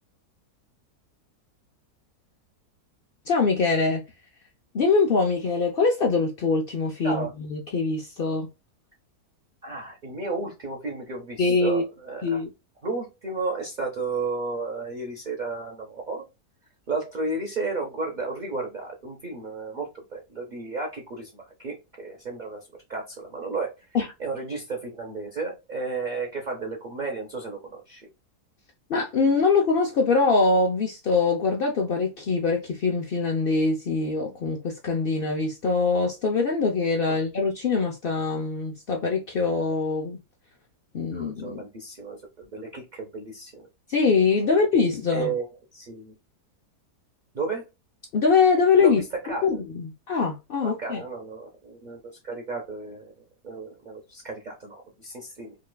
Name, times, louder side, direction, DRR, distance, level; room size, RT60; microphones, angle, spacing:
voice 1, 3.3-4.0 4.7-8.5 11.4-11.8 12.2-12.5 23.9-24.1 28.9-40.2 40.9-41.6 43.9-45.3 48.1-51.0, left 4 dB, 75° left, 0.5 m, -23 dB
voice 2, 9.6-12.4 12.8-16.3 16.9-23.9 24.2-28.1 37.0-37.2 41.1-43.7 44.4-44.6 45.1-45.5 45.7-46.1 47.3-47.7 48.8-49.5 50.6-53.1 53.4-55.6, right 3 dB, 40° right, 0.7 m, -33 dB
4.9 x 2.4 x 2.2 m
omnidirectional pair, 1.7 m